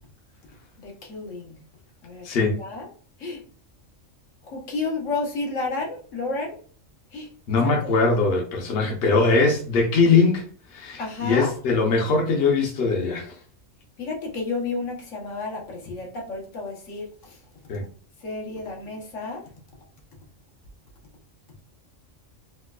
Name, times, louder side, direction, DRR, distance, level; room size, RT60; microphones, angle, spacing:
voice 1, 0.8-1.6 2.0-2.9 3.2-3.4 4.4-6.6 7.1-7.3 7.6-7.9 11.0-11.5 14.0-17.4 18.2-19.4, left 3 dB, 75° left, -1 dB, 1.3 m, -31 dB
voice 2, 2.2-2.6 7.5-13.3 17.7-17.8, left 4 dB, 55° left, 0 dB, 0.9 m, -21 dB
4.3 x 2.2 x 2.3 m, 0.43 s
omnidirectional pair, 1.3 m